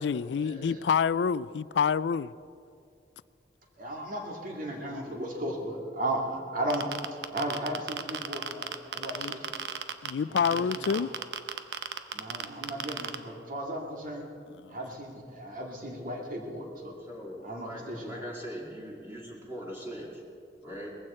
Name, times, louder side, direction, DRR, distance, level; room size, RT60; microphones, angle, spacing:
voice 1, 0.0-2.3 9.2-9.3 10.0-11.1 14.6-14.8, left 6 dB, 75° left, 0.3 m, -27 dB
voice 2, 3.8-6.9 7.3-9.5 10.3-11.0 12.1-14.3 14.7-17.0 17.4-18.2, right 1 dB, 50° right, 2.3 m, -35 dB
sound 1, 6.7-10.1 10.4-13.2, right 7 dB, 75° right, 0.8 m, -33 dB
voice 3, 17.1-20.2 20.6-21.0, equal, 15° right, 2.3 m, -41 dB
20.0 x 15.5 x 4.4 m
head